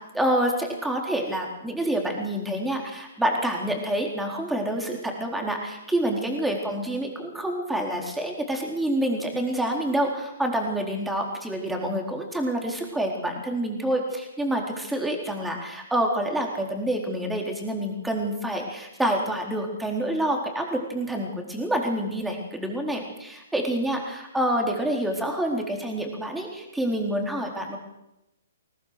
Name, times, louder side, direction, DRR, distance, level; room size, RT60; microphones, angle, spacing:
voice 1, 0.1-27.8, right 1 dB, 5° right, 1 dB, 4.2 m, -27 dB
22.5 x 18.0 x 6.7 m, 0.91 s
figure-of-eight pair, 125°, 0 cm